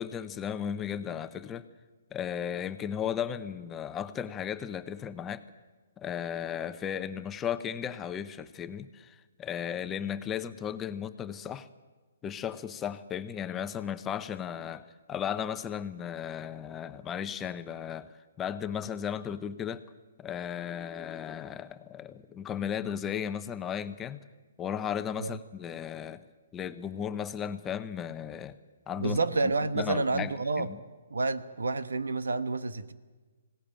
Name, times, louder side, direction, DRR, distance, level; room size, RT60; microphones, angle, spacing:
voice 1, 0.0-1.7 2.1-5.4 6.0-11.7 12.2-19.8 20.2-24.2 24.6-26.2 26.5-28.6 28.9-29.2 29.7-30.8, left 8 dB, 15° left, 0.8 m, -35 dB
voice 2, 29.0-30.7 31.1-32.9, right 3 dB, 85° right, 1.2 m, -29 dB
20.5 x 17.5 x 8.9 m
hypercardioid pair, 140°, 0 cm